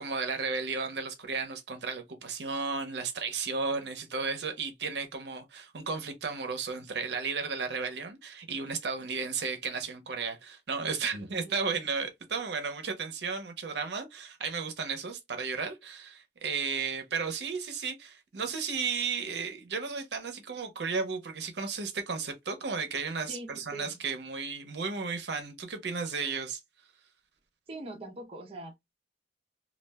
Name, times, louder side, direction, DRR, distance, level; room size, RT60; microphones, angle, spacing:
voice 1, 0.0-26.6, right 5 dB, 75° right, 0.7 m, -34 dB
voice 2, 11.3-11.8 23.3-24.0 27.7-29.0, right 1 dB, 35° right, 0.6 m, -43 dB
2.3 x 2.1 x 3.3 m
head